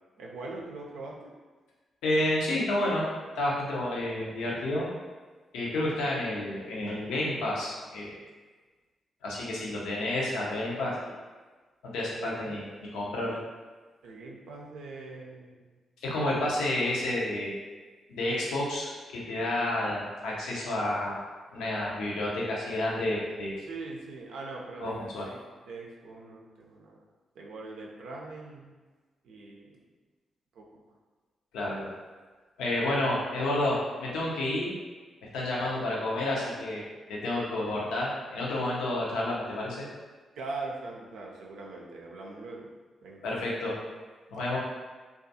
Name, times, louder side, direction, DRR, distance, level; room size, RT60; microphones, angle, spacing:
voice 1, 0.2-1.3 12.2-12.6 13.3-13.4 14.0-15.7 23.6-25.4 25.7-27.0 27.4-28.7 29.2-29.7 30.5-30.6 40.4-42.7 43.0-43.3, right 3 dB, 75° right, -2 dB, 0.4 m, -42 dB
voice 2, 2.0-3.1 3.4-4.9 5.5-8.1 9.2-11.0 11.8-13.4 16.0-17.6 18.1-21.2 21.5-23.6 24.8-25.3 31.5-31.9 32.6-34.7 35.3-36.8 37.1-39.8 43.2-43.8 44.3-44.6, left 1 dB, 80° left, -4 dB, 0.5 m, -30 dB
2.4 x 2.3 x 2.6 m, 1.3 s
hypercardioid pair, 40°, 0 cm